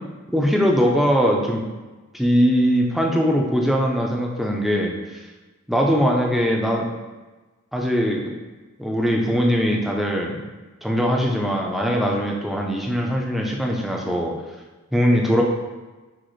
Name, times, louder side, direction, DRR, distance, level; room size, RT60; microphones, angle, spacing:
voice 1, 0.3-1.6 2.1-4.9 5.7-6.9 7.7-8.2 8.8-10.4 10.8-14.3 14.9-15.4, equal, ahead, -1 dB, 0.4 m, -21 dB
6.3 x 2.4 x 3.1 m, 1.2 s
head